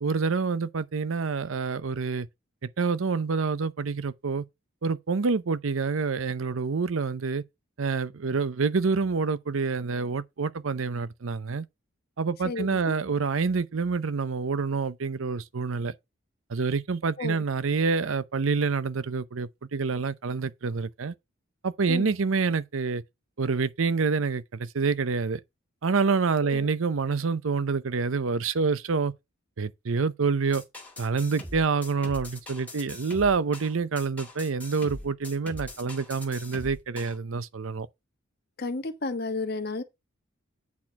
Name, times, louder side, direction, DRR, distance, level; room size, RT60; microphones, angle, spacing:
voice 1, 0.0-2.3 2.6-4.4 4.8-7.4 7.8-11.6 12.2-15.9 16.5-21.1 21.6-23.0 23.4-25.4 25.8-29.1 29.6-30.6 31.0-37.9, right 4 dB, 85° right, 0.6 m, -27 dB
voice 2, 12.4-13.0 17.2-17.4 21.9-22.2 26.4-26.7 38.6-39.8, left 3 dB, 50° left, 1.2 m, -32 dB
sound 1, 30.5-37.2, left 1 dB, 5° left, 2.3 m, -42 dB
8.4 x 4.4 x 5.7 m
head